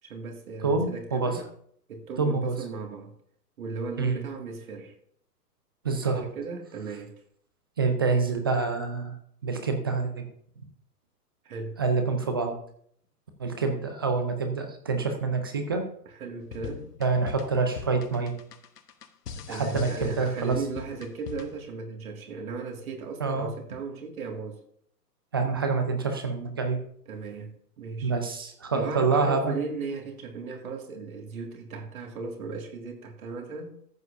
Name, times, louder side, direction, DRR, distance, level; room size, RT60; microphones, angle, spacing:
voice 1, 0.0-1.5 1.9-3.1 3.6-5.0 6.1-7.1 11.4-11.8 16.2-16.9 19.5-24.6 27.1-28.1 28.7-33.7, right 4 dB, 60° right, 2.1 m, -36 dB
voice 2, 0.6-1.4 2.2-2.6 4.0-4.2 5.8-6.2 7.8-9.1 9.4-10.3 11.8-12.6 13.4-15.8 17.0-18.3 19.5-20.6 23.2-23.5 25.3-26.8 28.0-29.5, right 4 dB, 15° right, 0.4 m, -26 dB
sound 1, 16.4-21.7, left 6 dB, 70° left, 1.1 m, -41 dB
14.0 x 8.0 x 2.6 m
figure-of-eight pair, 120°, 49 cm